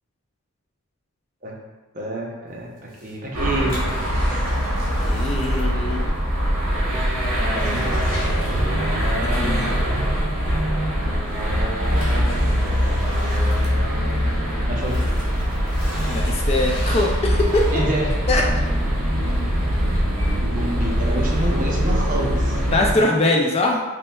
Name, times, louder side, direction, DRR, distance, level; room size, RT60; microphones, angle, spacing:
voice 1, 1.9-3.8 7.5-8.0 14.7-15.0 17.7-18.1 20.4-22.6, right 1 dB, 40° right, -2 dB, 0.6 m, -28 dB
sound 1, 2.8-5.8 6.0-6.1 6.6-6.7 7.1-9.1 10.5-10.6 11.3-14.4 14.7-18.0 18.6-18.7, left 1 dB, 70° left, 1.4 m, -37 dB
sound 2, 3.3-22.9, equal, 85° right, 0.9 m, -22 dB
voice 2, 5.0-6.1 9.2-9.9 16.1-17.7 18.3-18.4 22.7-23.8, left 2 dB, 30° left, -1 dB, 0.3 m, -22 dB
5.4 x 2.2 x 2.2 m, 1.2 s
head